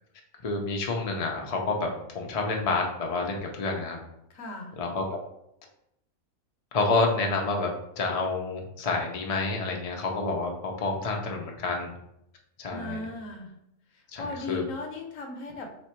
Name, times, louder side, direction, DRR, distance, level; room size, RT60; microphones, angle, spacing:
voice 1, 0.4-1.9 2.1-4.0 4.8-5.2 6.7-7.7 8.0-11.9 12.6-13.0 14.1-14.6, left 3 dB, 50° left, 1 dB, 0.4 m, -28 dB
voice 2, 4.3-4.8 12.7-13.6 13.9-15.7, left 2 dB, 70° left, 3 dB, 1.1 m, -37 dB
3.6 x 3.2 x 4.3 m, 0.79 s
omnidirectional pair, 1.5 m